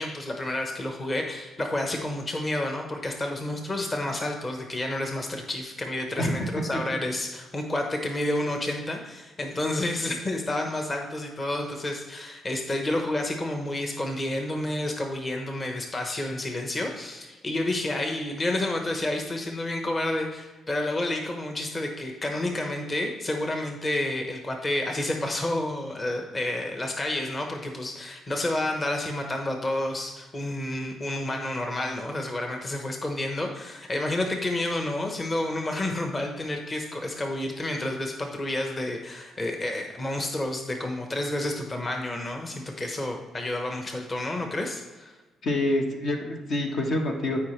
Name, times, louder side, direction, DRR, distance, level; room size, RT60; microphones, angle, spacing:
voice 1, 0.0-45.1, left 1 dB, 30° left, 3 dB, 1.1 m, -30 dB
voice 2, 6.2-6.8 45.4-47.4, left 1 dB, 65° left, 1 dB, 1.5 m, -27 dB
13.0 x 5.0 x 3.3 m, 1.2 s
cardioid pair, 90°, 0 cm